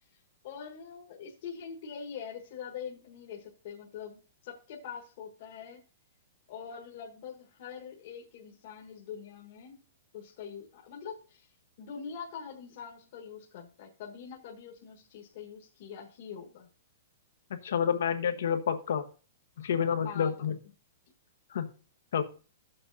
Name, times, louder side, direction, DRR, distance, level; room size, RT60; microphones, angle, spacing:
voice 1, 0.4-5.8 6.5-9.8 10.1-11.5 11.8-16.7 20.0-20.3, left 7 dB, 50° left, -1 dB, 1.4 m, -44 dB
voice 2, 17.6-19.0 19.6-20.5 21.5-21.7 22.1-22.2, left 7 dB, 75° left, 8 dB, 1.1 m, -29 dB
14.5 x 7.1 x 2.7 m, 0.37 s
hypercardioid pair, 165°, 0 cm